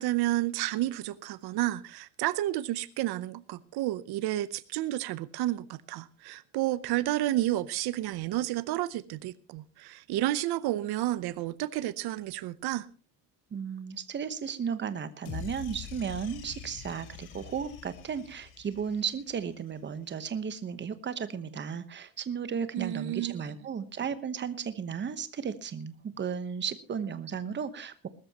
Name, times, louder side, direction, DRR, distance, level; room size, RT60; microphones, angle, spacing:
voice 1, 0.0-12.9 22.7-23.4, right 15 dB, 90° right, 0.8 m, -31 dB
voice 2, 13.5-28.1, right 7 dB, 30° right, 1.1 m, -35 dB
sound 1, 15.3-19.6, left 9 dB, 80° left, 2.8 m, -44 dB
20.5 x 13.5 x 2.9 m
cardioid pair, 160°, 37 cm